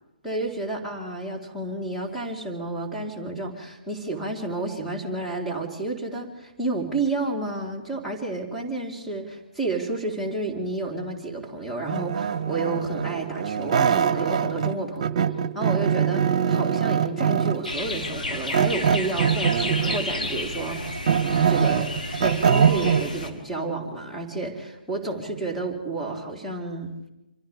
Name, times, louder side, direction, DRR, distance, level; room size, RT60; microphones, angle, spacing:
voice 1, 0.2-15.0 15.5-20.8 21.5-21.9 22.2-26.9, right 2 dB, 5° left, -1 dB, 3.9 m, -30 dB
sound 1, 11.9-14.7 15.0-17.7 18.5-20.1 20.6-23.1, right 7 dB, 45° right, 1.4 m, -23 dB
sound 2, 17.6-23.3, left 2 dB, 75° left, 3.9 m, -32 dB
28.5 x 26.5 x 3.6 m, 0.96 s
figure-of-eight pair, 135°, 5 cm